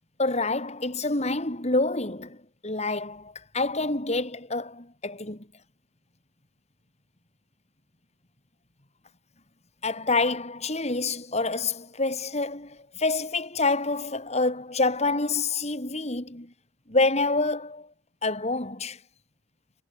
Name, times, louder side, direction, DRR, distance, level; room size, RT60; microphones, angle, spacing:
voice 1, 0.2-2.4 2.6-5.5 9.8-16.5 16.9-17.9 18.2-19.0, left 3 dB, 35° left, 3.8 m, -27 dB
head